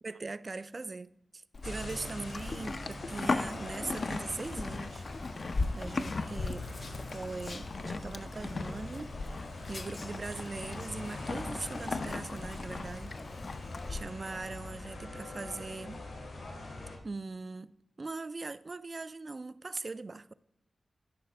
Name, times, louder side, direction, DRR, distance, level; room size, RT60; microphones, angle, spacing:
voice 1, 0.0-5.0 5.8-9.4 9.7-13.5 13.9-16.0 17.0-20.3, right 3 dB, 40° right, 0.3 m, -41 dB
Livestock farm animals working animals, 1.5-14.0, left 3 dB, 55° left, 0.5 m, -38 dB
sound 1, 1.6-17.0, left 2 dB, 90° left, 2.4 m, -43 dB
13.5 x 5.7 x 3.4 m
wide cardioid pair, 110°, 0 cm